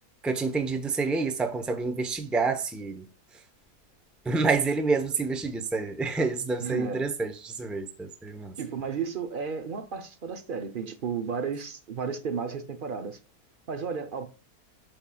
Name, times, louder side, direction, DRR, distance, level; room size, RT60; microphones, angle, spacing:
voice 1, 0.2-3.1 4.2-8.6, right 4 dB, ahead, 0.5 m, -28 dB
voice 2, 6.6-7.0 8.6-13.2 13.7-14.3, right 6 dB, 45° right, 0.7 m, -33 dB
8.8 x 6.9 x 2.3 m
omnidirectional pair, 1.7 m